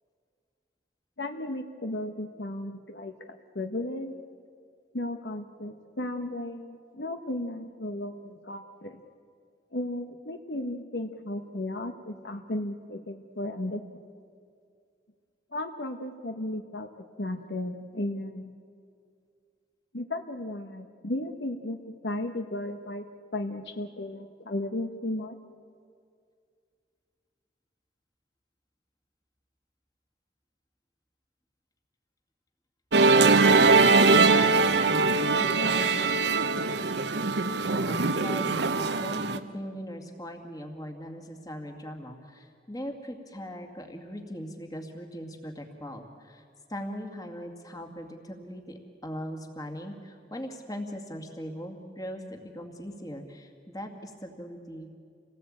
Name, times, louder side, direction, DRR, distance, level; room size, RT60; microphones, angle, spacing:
voice 1, 1.2-4.1 4.9-9.0 9.7-13.8 15.5-16.9 17.2-18.5 19.9-21.8 22.0-23.0 23.3-25.4, left 1 dB, 65° left, 6 dB, 1.2 m, -34 dB
Musical instrument, 32.9-39.4, right 3 dB, 70° right, 1.0 m, -22 dB
voice 2, 34.3-35.1 35.4-36.5 37.7-46.4 46.7-54.9, equal, 20° left, 4 dB, 2.2 m, -39 dB
27.5 x 18.5 x 8.8 m, 2.3 s
head